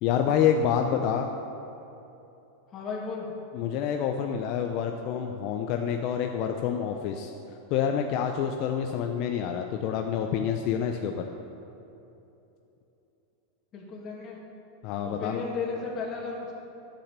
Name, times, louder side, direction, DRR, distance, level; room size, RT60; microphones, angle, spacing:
voice 1, 0.0-1.3 3.5-7.3 7.7-11.3 14.8-15.4, left 8 dB, 50° left, 4 dB, 0.7 m, -27 dB
voice 2, 2.7-3.3 13.7-14.4 15.0-16.5, left 4 dB, 35° left, -2 dB, 2.6 m, -34 dB
10.0 x 8.9 x 6.7 m, 2.9 s
supercardioid pair, 130°, 0 cm